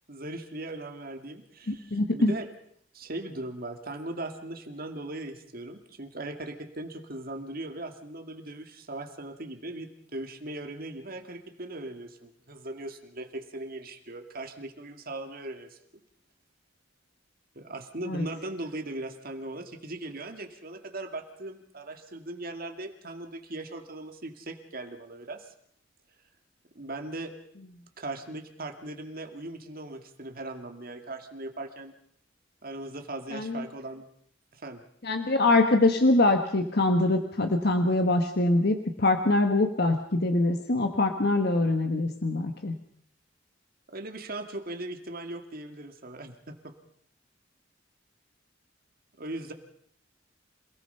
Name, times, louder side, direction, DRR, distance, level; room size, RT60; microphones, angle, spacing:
voice 1, 0.1-2.5 2.9-15.8 17.6-25.5 26.7-27.3 28.0-31.9 32.6-34.1 34.5-34.8 43.9-46.7 49.2-49.5, right 2 dB, 50° right, 6 dB, 2.2 m, -39 dB
voice 2, 1.7-2.3 18.1-18.3 33.3-33.6 35.0-42.7, left 2 dB, 55° left, 6 dB, 1.4 m, -24 dB
27.0 x 18.0 x 5.7 m, 0.66 s
head